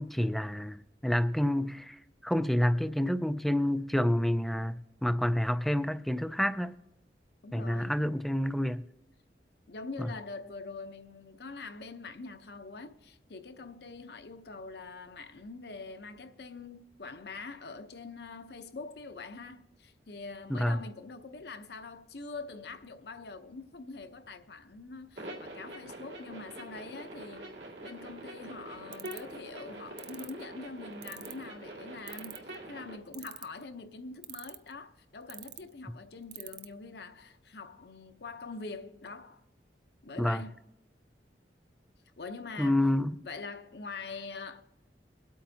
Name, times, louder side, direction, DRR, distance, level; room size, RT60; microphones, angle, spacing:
voice 1, 0.0-2.0 2.2-6.7 7.5-8.8 10.0-10.1 20.5-20.8 40.2-40.4 42.6-43.2, left 1 dB, ahead, 0.3 m, -28 dB
voice 2, 7.4-7.9 9.7-27.5 27.8-39.4 40.0-40.6 42.2-42.9 43.2-44.6, left 3 dB, 65° left, 0.8 m, -44 dB
sound 1, 25.1-32.9, right 1 dB, 90° right, 2.4 m, -45 dB
sound 2, 28.9-29.3 30.0-30.3 31.0-31.4 32.1-32.6 33.1-33.6 34.2-34.7 35.3-35.6 36.3-36.7, right 15 dB, 70° right, 0.5 m, -42 dB
23.0 x 8.4 x 2.8 m
head